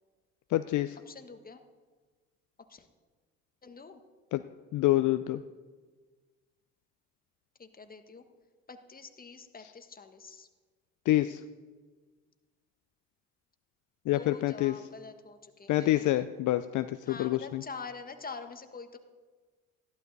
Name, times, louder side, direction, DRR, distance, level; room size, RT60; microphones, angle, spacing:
voice 1, 0.5-1.0 4.3-4.4 4.7-5.4 11.1-11.4 14.1-14.7 15.7-17.6, left 15 dB, 60° left, 11 dB, 0.5 m, -27 dB
voice 2, 1.1-1.6 2.7-2.9 3.6-4.0 7.6-8.2 8.7-10.5 14.1-16.2 17.1-19.0, left 4 dB, 25° left, 8 dB, 1.3 m, -45 dB
14.5 x 11.5 x 4.1 m, 1.4 s
supercardioid pair, 70°, 35 cm